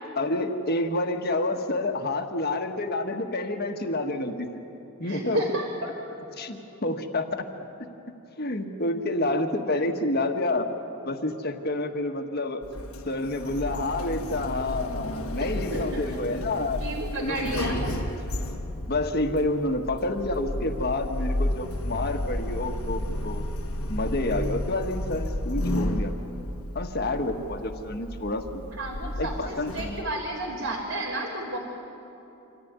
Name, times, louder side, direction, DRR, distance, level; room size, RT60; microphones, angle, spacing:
voice 1, 0.2-4.6 5.0-5.4 6.4-7.2 8.4-10.7 11.0-12.6 13.0-16.8 17.2-18.1 18.9-23.4 23.9-26.1 26.7-28.6 29.2-30.1, left 2 dB, 45° left, 5 dB, 1.4 m, -29 dB
voice 2, 5.0-5.9 15.4-16.1 16.8-18.0 28.7-31.6, right 1 dB, 70° right, -7 dB, 3.6 m, -32 dB
Sliding door, 12.6-30.0, left 1 dB, 90° left, 1.5 m, -32 dB
26.0 x 14.5 x 9.5 m, 3.0 s
head